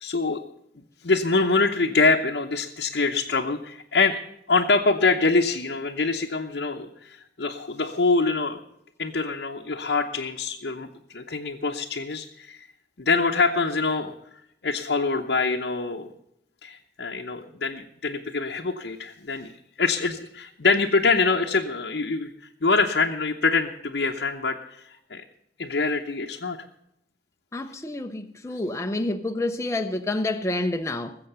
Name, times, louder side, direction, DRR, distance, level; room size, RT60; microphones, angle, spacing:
voice 1, 0.0-0.4 1.0-4.2 4.5-8.6 9.0-12.7 13.0-14.1 14.6-16.1 16.6-19.5 19.8-22.3 22.6-25.2 25.6-26.6, left 3 dB, 70° left, 0.8 m, -24 dB
voice 2, 27.5-31.2, left 2 dB, 15° left, 0.6 m, -28 dB
20.0 x 7.7 x 6.7 m
head